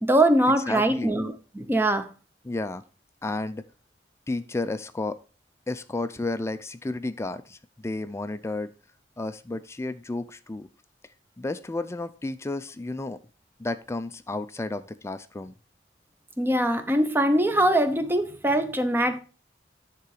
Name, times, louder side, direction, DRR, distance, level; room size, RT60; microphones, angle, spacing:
voice 1, 0.0-2.1 16.4-19.2, right 1 dB, 15° right, 0.7 m, -22 dB
voice 2, 0.7-1.2 2.4-2.8 3.2-3.6 4.3-5.2 5.7-8.7 9.2-10.7 11.4-13.2 13.6-15.5, left 2 dB, 15° left, 0.3 m, -32 dB
9.8 x 3.8 x 4.7 m
head